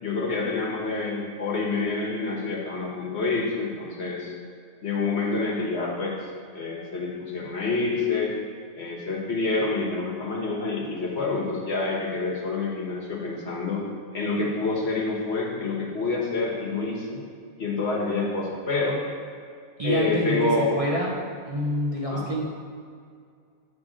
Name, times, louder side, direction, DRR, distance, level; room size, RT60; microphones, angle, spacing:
voice 1, 0.0-4.3 4.8-6.2 6.5-8.3 8.7-13.8 14.1-17.2 17.6-19.0 19.8-20.8 22.1-22.3, left 3 dB, 60° left, -3 dB, 1.4 m, -27 dB
voice 2, 19.8-21.2 21.5-22.4, equal, 30° right, -4 dB, 0.8 m, -27 dB
8.9 x 3.5 x 5.0 m, 2.2 s
omnidirectional pair, 1.3 m